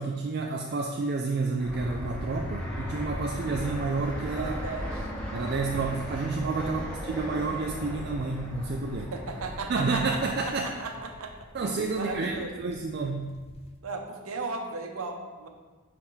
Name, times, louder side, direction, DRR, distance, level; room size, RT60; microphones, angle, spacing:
voice 1, 0.0-4.5 5.3-9.1 9.7-10.7 11.5-13.3, right 3 dB, 45° right, 1 dB, 0.4 m, -30 dB
Fixed-wing aircraft airplane, 1.6-10.3, equal, 5° left, 1.0 m, -37 dB
sound 1, 1.8-13.8, left 1 dB, 25° left, 0.4 m, -44 dB
voice 2, 4.3-5.1 6.6-6.9 9.0-11.3 11.6-12.5 13.8-15.5, right 3 dB, 75° right, 4 dB, 0.7 m, -36 dB
10.0 x 3.5 x 3.1 m, 1.3 s
head